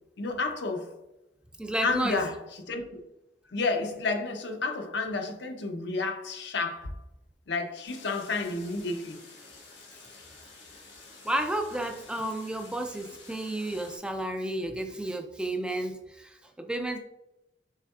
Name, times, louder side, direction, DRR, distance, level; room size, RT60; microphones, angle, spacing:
voice 1, 0.2-0.9 1.8-2.8 3.5-6.9 7.5-9.2, left 3 dB, 65° left, 0.6 m, -31 dB
voice 2, 1.6-2.2 11.2-17.0, right 1 dB, 5° right, 0.3 m, -32 dB
sound 1, 7.8-14.0, left 3 dB, 85° left, 1.6 m, -50 dB
5.6 x 3.4 x 2.3 m
head